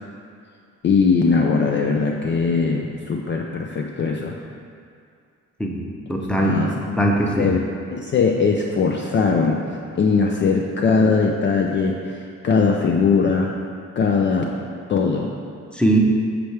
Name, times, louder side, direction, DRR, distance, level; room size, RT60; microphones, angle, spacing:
voice 1, 0.8-4.4 6.4-6.7 7.4-7.6 7.9-9.6 10.0-13.5 14.0-14.5 14.9-15.3, left 5 dB, 40° left, 1 dB, 0.4 m, -20 dB
voice 2, 6.1-7.5 15.7-16.0, right 1 dB, 5° left, -1 dB, 0.7 m, -20 dB
6.8 x 4.5 x 3.3 m, 2.3 s
cardioid pair, 90°, 30 cm